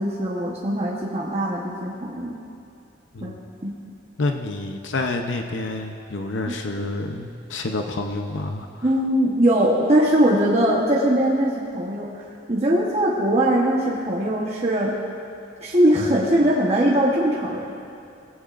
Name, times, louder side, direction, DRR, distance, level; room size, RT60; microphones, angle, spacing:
voice 1, 0.0-2.4 3.2-3.3 3.6-3.7 8.8-14.9 15.6-17.6, right 1 dB, 35° right, -4 dB, 1.1 m, -21 dB
voice 2, 4.2-8.9, left 2 dB, 70° left, 4 dB, 0.7 m, -28 dB
19.0 x 15.0 x 2.5 m, 2.5 s
head